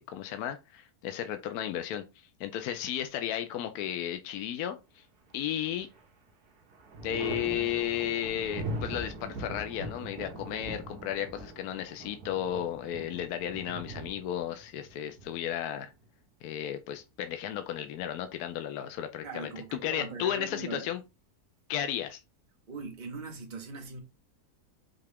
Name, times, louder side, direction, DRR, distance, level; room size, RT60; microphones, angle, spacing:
voice 1, 0.0-5.0 5.3-5.9 7.0-15.9 16.4-21.0 21.7-22.2, left 10 dB, 75° left, 1.0 m, -34 dB
Thunder, 5.3-6.1 6.4-16.0 17.5-18.3, right 2 dB, 75° right, 1.7 m, -41 dB
voice 2, 19.2-20.9 22.7-24.0, right 4 dB, 35° right, 1.0 m, -41 dB
5.6 x 2.4 x 3.5 m
omnidirectional pair, 1.7 m